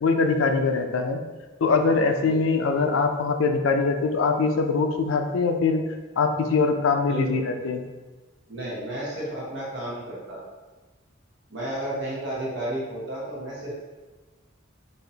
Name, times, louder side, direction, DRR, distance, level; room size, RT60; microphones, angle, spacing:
voice 1, 0.0-1.2 1.6-5.8 6.2-7.8, left 4 dB, 75° left, 6 dB, 0.4 m, -22 dB
voice 2, 7.1-7.4 8.5-10.4 11.5-13.8, right 1 dB, 65° right, -6 dB, 1.1 m, -32 dB
4.1 x 2.8 x 2.8 m, 1.2 s
head